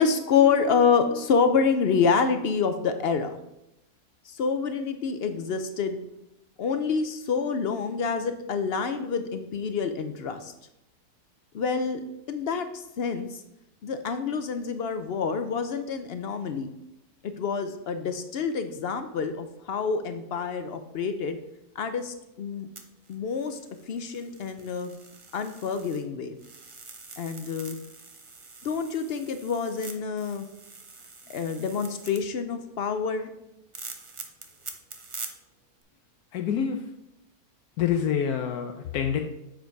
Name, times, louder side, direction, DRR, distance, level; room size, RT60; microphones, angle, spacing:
voice 1, 0.0-3.3 4.3-6.0 6.6-10.5 11.5-12.0 12.3-13.4 13.8-16.7 17.2-21.4 21.8-22.7 23.1-23.6 23.9-24.9 25.3-26.4 27.2-27.8 28.6-30.5 31.3-33.3, left 5 dB, 65° left, 8 dB, 0.6 m, -27 dB
sound 1, 22.8-26.1 26.4-32.2 33.7-35.3 35.8-35.9, right 4 dB, 40° right, 0.4 m, -45 dB
voice 2, 36.3-36.9 37.8-39.2, left 8 dB, 80° left, 5 dB, 1.1 m, -27 dB
7.4 x 5.1 x 4.6 m, 0.86 s
omnidirectional pair, 1.6 m